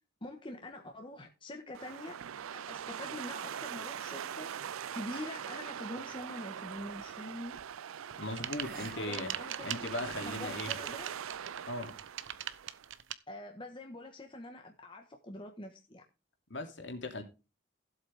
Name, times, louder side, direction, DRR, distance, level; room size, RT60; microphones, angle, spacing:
voice 1, 0.2-2.2 2.5-4.5 4.9-7.6 8.7-11.1 13.3-16.0, left 1 dB, 25° left, 1.5 m, -45 dB
sound 1, 1.7-12.9, right 8 dB, 85° right, 0.5 m, -42 dB
sound 2, 6.9-7.2 8.5-9.0 9.3-9.4 9.9-10.6, right 4 dB, 45° right, 1.9 m, -49 dB
sound 3, 8.1-13.1, right 10 dB, 65° right, 0.9 m, -40 dB
voice 2, 8.2-9.3 9.6-10.7 11.6-11.9 16.5-17.2, left 2 dB, 60° left, 2.9 m, -38 dB
15.5 x 8.1 x 3.6 m
head